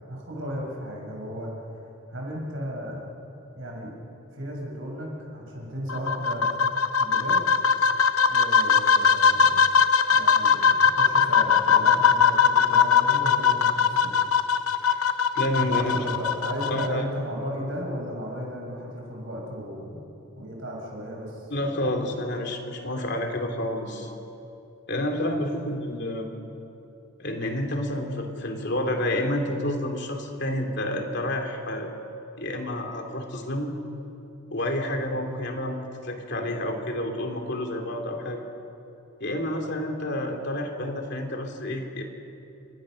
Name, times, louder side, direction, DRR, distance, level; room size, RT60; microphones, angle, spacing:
voice 1, 0.1-1.5 2.1-3.0 3.5-4.0 4.3-6.5 7.0-7.4 8.3-9.8 10.1-14.1 15.6-22.0 35.1-35.2, equal, 60° right, -1 dB, 6.5 m, -35 dB
sound 1, 5.9-16.9, left 6 dB, 80° left, 0.9 m, -21 dB
voice 2, 15.3-16.1 16.7-17.0 21.5-24.1 24.9-26.3 27.2-31.9 32.4-33.7 34.5-38.4 39.2-42.0, left 1 dB, 50° left, 3 dB, 3.0 m, -29 dB
29.5 x 24.5 x 6.5 m, 2.8 s
head